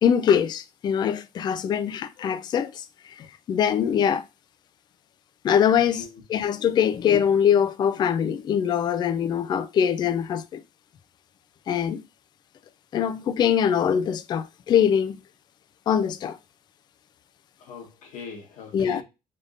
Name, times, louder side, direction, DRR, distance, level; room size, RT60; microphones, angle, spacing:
voice 1, 0.0-4.2 5.4-10.6 11.7-12.0 12.9-15.2 15.9-16.4 18.7-19.0, left 8 dB, 35° left, 0.3 m, -23 dB
voice 2, 5.8-6.2 17.6-19.0, left 6 dB, 65° left, 1.4 m, -41 dB
3.9 x 3.6 x 2.5 m
cardioid pair, 150°, 13 cm